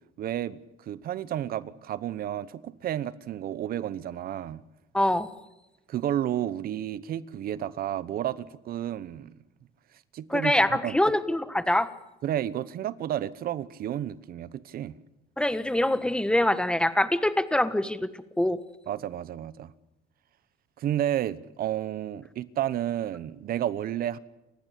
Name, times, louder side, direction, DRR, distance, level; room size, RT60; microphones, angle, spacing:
voice 1, 0.2-0.6 0.9-4.6 5.9-9.3 10.1-11.0 12.2-14.9 18.9-19.7 20.8-24.2, right 11 dB, 60° right, 1.1 m, -31 dB
voice 2, 4.9-5.3 10.3-11.9 15.4-18.1 18.4-18.6, left 1 dB, 5° left, 1.5 m, -24 dB
29.5 x 15.5 x 8.3 m
cardioid pair, 110°, 17 cm